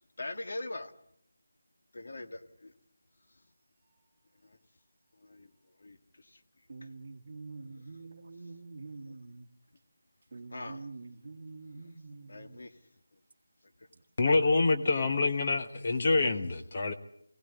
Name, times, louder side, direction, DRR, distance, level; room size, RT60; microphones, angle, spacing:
voice 1, 0.2-0.9 1.9-2.7 4.4-4.6 5.2-5.5 5.8-6.4 10.5-10.9 11.7-11.8 12.3-12.8 13.1-13.2 13.8-13.9, left 2 dB, 55° left, 1.7 m, -42 dB
voice 2, 6.7-9.5 10.3-12.6 13.9-14.0 14.3-14.4 14.7-15.0 15.3-15.5, right 3 dB, 40° right, 1.7 m, -46 dB
voice 3, 14.2-16.9, left 3 dB, 35° left, 1.1 m, -26 dB
25.0 x 17.5 x 8.1 m
figure-of-eight pair, 175°, 0 cm